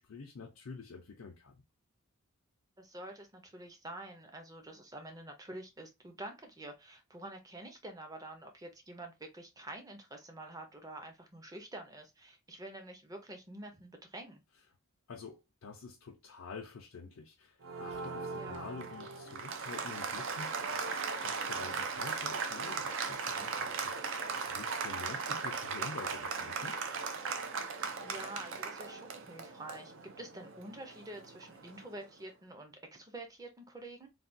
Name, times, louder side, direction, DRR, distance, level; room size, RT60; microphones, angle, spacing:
voice 1, 0.0-1.6 15.1-20.9 21.2-26.8, left 4 dB, 80° left, 0.5 m, -48 dB
voice 2, 2.8-14.4 18.4-18.7 25.1-25.4 27.7-29.9 30.2-34.1, right 1 dB, 15° right, 0.6 m, -47 dB
Applause, 17.6-32.0, right 5 dB, 60° right, 0.5 m, -38 dB
3.3 x 2.2 x 2.6 m
head